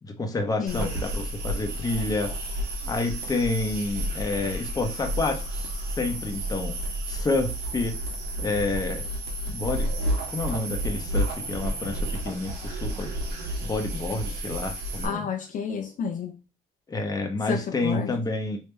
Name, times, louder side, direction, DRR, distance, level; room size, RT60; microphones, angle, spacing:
voice 1, 0.0-2.3 2.9-6.7 7.1-8.0 8.4-9.1 9.5-9.9 10.3-13.1 13.6-15.3 16.9-18.6, left 3 dB, 20° left, 0.8 m, -29 dB
voice 2, 0.6-0.9 15.0-16.4 17.4-18.1, left 7 dB, 50° left, 0.6 m, -31 dB
sound 1, 0.7-15.1, right 1 dB, 75° right, 1.2 m, -31 dB
3.3 x 2.8 x 3.2 m
cardioid pair, 110°, 17 cm